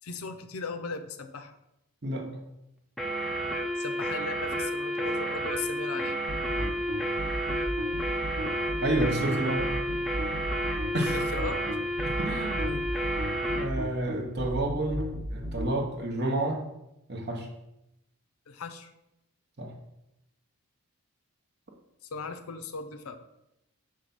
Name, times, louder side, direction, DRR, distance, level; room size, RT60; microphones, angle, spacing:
voice 1, 0.0-1.6 3.8-6.2 11.1-11.6 18.5-18.9 22.1-23.2, left 4 dB, 70° left, 8 dB, 0.5 m, -37 dB
sound 1, 3.0-13.7, right 1 dB, ahead, 0.5 m, -31 dB
sound 2, 6.3-15.7, equal, 70° right, 1.2 m, -35 dB
voice 2, 8.8-9.7 10.9-11.3 12.1-13.1 13.5-16.6 17.1-17.5 19.6-19.7, right 1 dB, 45° right, 1 dB, 0.9 m, -30 dB
5.6 x 3.2 x 5.2 m, 0.87 s
head